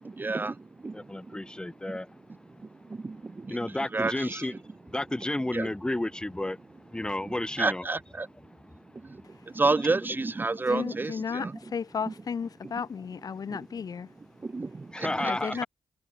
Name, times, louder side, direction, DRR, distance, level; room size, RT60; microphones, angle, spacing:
voice 1, 0.0-1.4 2.9-3.6 3.9-4.5 5.5-5.7 7.6-8.3 9.0-9.2 9.5-11.6 12.1-12.2 13.5-13.6 14.4-15.6, right 3 dB, 25° right, 0.8 m, -30 dB
voice 2, 0.9-2.0 3.5-4.5 4.9-6.6 6.9-7.9 10.9-11.0 14.9-15.7, left 1 dB, 10° left, 1.6 m, -31 dB
voice 3, 10.7-14.1 15.0-15.7, left 6 dB, 50° left, 1.5 m, -34 dB
cardioid pair, 110°, 8 cm